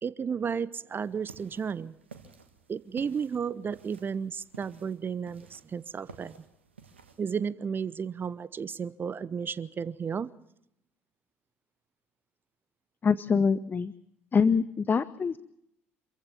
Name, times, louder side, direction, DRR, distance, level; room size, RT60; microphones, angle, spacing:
voice 1, 0.0-2.0 2.7-6.3 7.2-10.3, right 6 dB, 35° right, 0.8 m, -33 dB
sound 1, 1.0-7.4, right 5 dB, 90° right, 1.6 m, -53 dB
voice 2, 13.0-13.9 14.3-15.4, left 5 dB, 30° left, 0.8 m, -24 dB
26.5 x 15.0 x 7.4 m
hypercardioid pair, 55°, 6 cm